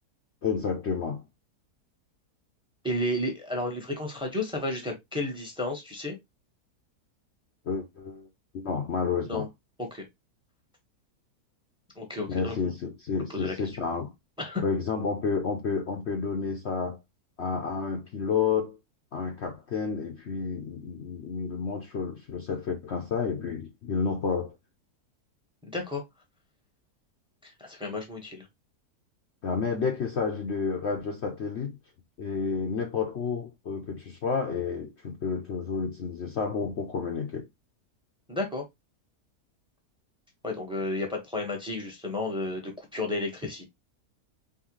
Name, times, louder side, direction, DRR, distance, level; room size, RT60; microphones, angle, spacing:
voice 1, 0.4-1.2 7.7-8.3 8.5-9.5 12.3-14.1 14.6-17.0 17.4-18.8 19.1-24.6 29.4-31.8 32.2-37.5, left 5 dB, 55° left, 0.9 m, -30 dB
voice 2, 2.8-6.2 9.3-9.5 9.8-10.0 11.9-12.5 13.3-13.7 14.4-14.6 25.6-26.0 27.4-28.5 38.3-38.6 40.4-43.7, left 2 dB, 5° right, 1.1 m, -32 dB
4.7 x 3.2 x 3.0 m
omnidirectional pair, 1.6 m